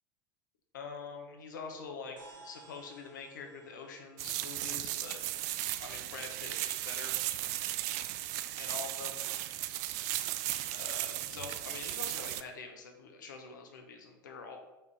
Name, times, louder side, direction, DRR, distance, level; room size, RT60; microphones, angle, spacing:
voice 1, 0.7-5.2 5.8-7.2 8.6-9.2 10.7-14.6, left 5 dB, 70° left, 3 dB, 1.0 m, -45 dB
sound 1, 2.2-6.8, right 3 dB, 85° right, 2.1 m, -59 dB
sound 2, 4.2-12.4, right 14 dB, 55° right, 0.4 m, -36 dB
4.8 x 4.6 x 4.8 m, 1.0 s
figure-of-eight pair, 75°, 11 cm